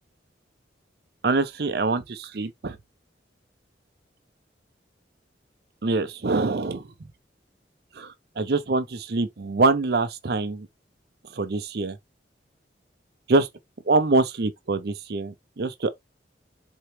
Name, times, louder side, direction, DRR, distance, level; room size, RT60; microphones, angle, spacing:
voice 1, 1.2-2.8 5.8-6.9 8.0-10.7 11.3-12.0 13.3-13.5 13.9-15.9, right 3 dB, 60° right, 0.6 m, -24 dB
4.5 x 2.9 x 3.1 m
head